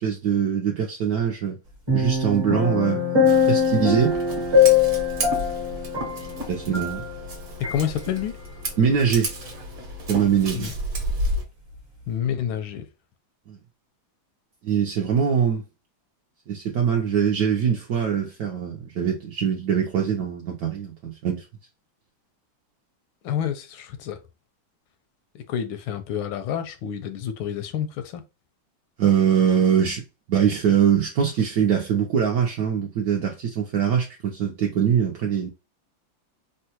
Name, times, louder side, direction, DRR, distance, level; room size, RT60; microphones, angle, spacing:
voice 1, 0.0-1.6 1.9-3.0 3.5-4.2 6.5-7.1 8.8-9.3 10.1-10.7 13.5-13.6 14.6-15.6 16.5-21.4 29.0-30.0 30.3-35.5, right 8 dB, 80° right, 0.8 m, -22 dB
sound 1, 1.9-7.3 7.6-7.8, left 6 dB, 25° right, 0.6 m, -22 dB
Scissors, 3.3-11.4, equal, 50° right, 1.1 m, -32 dB
voice 2, 7.6-8.3 10.5-10.7 12.1-12.9 23.2-24.2 25.4-28.2, left 9 dB, 85° left, 1.4 m, -28 dB
3.6 x 2.2 x 2.8 m
omnidirectional pair, 2.2 m